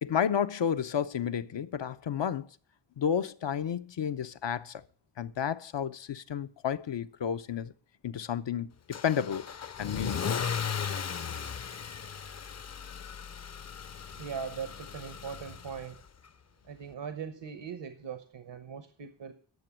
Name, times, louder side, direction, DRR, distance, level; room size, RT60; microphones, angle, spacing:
voice 1, 0.0-2.5 3.0-4.8 5.2-7.7 8.0-9.5 9.8-10.3, left 8 dB, 90° left, 0.7 m, -31 dB
Car / Engine starting / Accelerating revving vroom, 8.9-16.0, left 7 dB, 40° left, 0.5 m, -37 dB
voice 2, 14.2-16.0 16.7-19.3, right 7 dB, 85° right, 1.1 m, -40 dB
11.0 x 6.9 x 7.3 m
wide cardioid pair, 70°, 42 cm